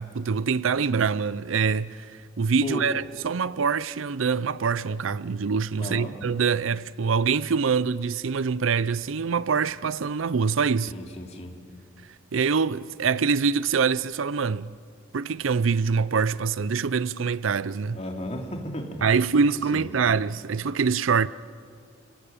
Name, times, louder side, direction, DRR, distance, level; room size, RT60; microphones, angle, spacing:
voice 1, 0.0-10.9 12.3-14.7 15.1-18.0 19.0-21.3, right 5 dB, 80° right, 0.5 m, -24 dB
voice 2, 5.8-6.1 10.9-11.5 17.9-19.0 19.7-20.1, equal, 35° left, 2.9 m, -34 dB
29.0 x 17.5 x 8.8 m
head